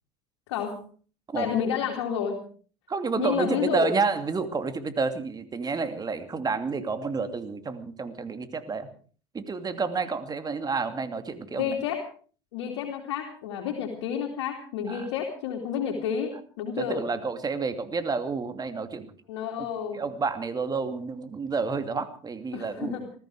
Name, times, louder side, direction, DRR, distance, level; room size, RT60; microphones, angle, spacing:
voice 1, 1.3-2.4 3.2-3.9 11.5-12.0 12.5-17.0 19.3-20.0 22.5-23.0, left 8 dB, 80° left, 0 dB, 3.0 m, -30 dB
voice 2, 2.9-8.9 9.3-11.7 14.9-15.1 16.8-19.1 19.6-19.7 19.9-22.9, right 4 dB, 30° right, 9 dB, 2.6 m, -29 dB
20.0 x 14.5 x 4.9 m, 0.41 s
hypercardioid pair, 80°, 14 cm